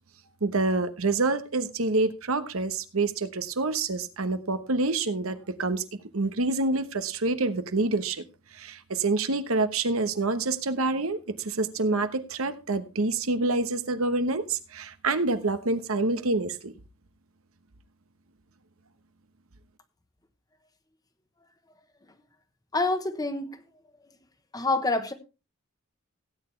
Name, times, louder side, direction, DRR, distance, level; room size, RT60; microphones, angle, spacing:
voice 1, 0.4-5.8 6.1-8.2 8.5-16.7, right 3 dB, 80° right, 1.1 m, -27 dB
voice 2, 22.7-23.6 24.5-25.1, left 2 dB, 15° left, 1.1 m, -27 dB
17.0 x 9.1 x 3.3 m
head